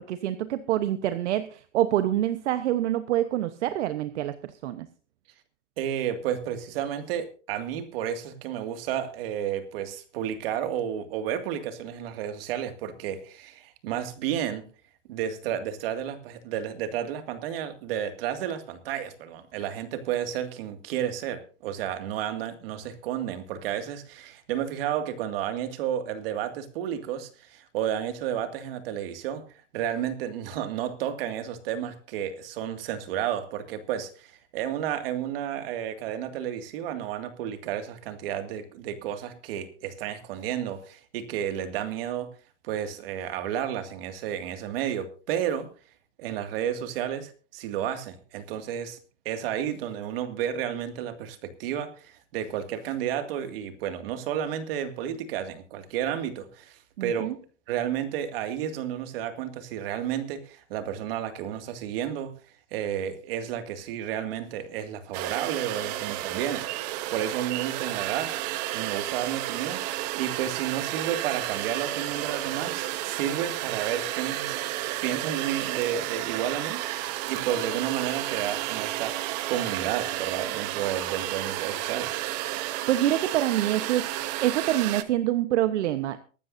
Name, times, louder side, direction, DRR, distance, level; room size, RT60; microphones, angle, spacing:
voice 1, 0.0-4.9 57.0-57.3 82.9-84.1 84.4-86.2, right 13 dB, 70° right, 10 dB, 1.1 m, -26 dB
voice 2, 5.8-14.6 15.1-29.4 29.7-42.3 42.6-45.7 46.2-49.0 49.3-57.3 57.7-62.3 62.7-66.7 67.1-74.6 75.0-76.8 77.3-82.2, right 10 dB, 50° right, 8 dB, 2.2 m, -32 dB
sound 1, 65.1-85.0, right 15 dB, 35° right, 0.9 m, -32 dB
23.5 x 12.5 x 2.7 m, 0.37 s
supercardioid pair, 165°, 37 cm